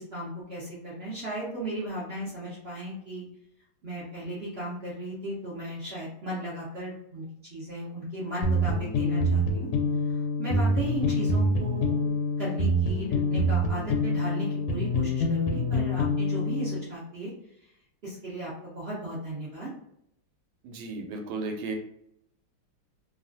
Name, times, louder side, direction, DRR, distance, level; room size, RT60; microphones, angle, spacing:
voice 1, 0.0-3.2 3.8-9.7 10.1-12.1 12.4-17.3 17.6-17.7 18.0-19.7, right 1 dB, 65° right, -7 dB, 0.6 m, -36 dB
sound 1, 8.4-16.9, left 1 dB, 90° left, 1.5 m, -26 dB
voice 2, 20.6-21.8, right 3 dB, 80° right, 3 dB, 1.3 m, -34 dB
3.2 x 2.4 x 2.5 m, 0.77 s
omnidirectional pair, 2.3 m